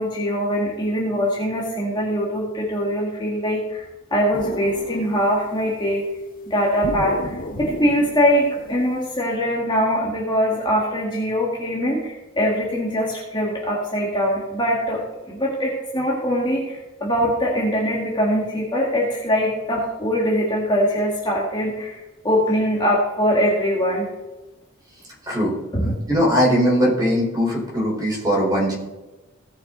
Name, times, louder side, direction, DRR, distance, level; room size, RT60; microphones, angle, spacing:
voice 1, 0.0-3.8 4.1-6.0 6.5-22.0 22.2-24.1 25.7-25.9, equal, 20° left, -3 dB, 1.8 m, -22 dB
sound 1, 4.3-5.8 6.8-9.3, left 1 dB, 40° left, 0.8 m, -33 dB
voice 2, 25.3-25.6 26.1-28.7, equal, 20° right, -4 dB, 4.2 m, -20 dB
17.0 x 6.4 x 3.9 m, 1.1 s
head